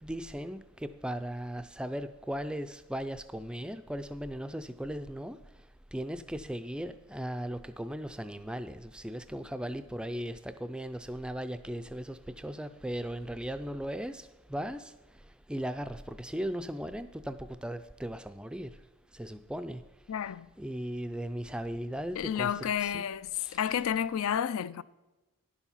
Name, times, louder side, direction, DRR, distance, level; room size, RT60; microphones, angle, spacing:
voice 1, 0.0-18.8 19.1-19.8 20.6-23.1 23.4-23.6, equal, 5° right, 0.3 m, -37 dB
voice 2, 20.1-20.5 22.1-24.8, left 9 dB, 75° left, 0.4 m, -31 dB
10.5 x 7.2 x 5.6 m
head